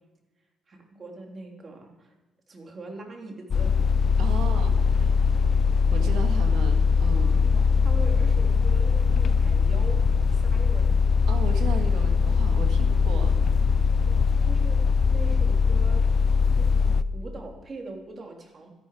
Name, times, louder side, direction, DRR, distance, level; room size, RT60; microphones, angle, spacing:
voice 1, 0.7-2.1 2.5-3.8 7.4-10.0 10.3-10.9 14.0-14.8 15.1-18.7, right 3 dB, 40° right, 1 dB, 3.1 m, -42 dB
sound 1, 3.5-17.0, left 5 dB, 50° left, 0.5 m, -21 dB
voice 2, 4.2-5.5 5.9-7.6 11.3-13.4, right 5 dB, 85° right, 5 dB, 1.9 m, -36 dB
13.0 x 11.5 x 4.9 m, 1.2 s
cardioid pair, 90°, 0 cm